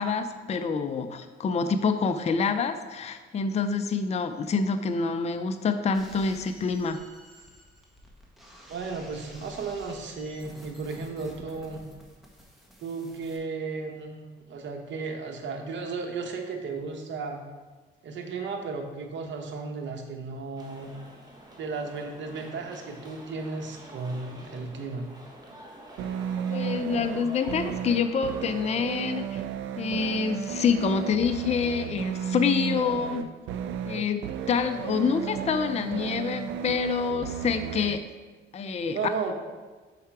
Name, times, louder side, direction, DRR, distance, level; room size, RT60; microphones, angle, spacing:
voice 1, 0.0-7.0 26.5-29.4 29.8-33.3 33.9-38.0 38.5-39.0, left 5 dB, 35° left, 8 dB, 0.4 m, -27 dB
sound 1, 5.9-13.4, equal, ahead, 1.4 m, -51 dB
voice 2, 8.7-11.8 12.8-17.4 18.0-21.0 21.6-25.1 38.9-39.3, right 4 dB, 65° right, 3 dB, 1.0 m, -34 dB
Ambience Bus Terminal Hallway, 20.6-28.4, right 1 dB, 20° right, 1.3 m, -47 dB
sound 2, 26.0-38.0, right 8 dB, 80° right, 0.4 m, -33 dB
5.6 x 4.8 x 4.6 m, 1.3 s
cardioid pair, 90°, 20 cm